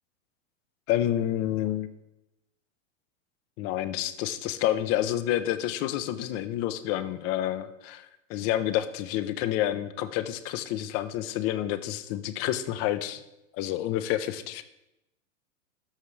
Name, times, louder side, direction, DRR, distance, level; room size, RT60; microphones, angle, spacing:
voice 1, 0.9-1.9 3.6-13.2 13.6-14.6, left 12 dB, 40° left, 13 dB, 0.7 m, -29 dB
13.0 x 5.8 x 3.3 m, 0.91 s
hypercardioid pair, 120°, 38 cm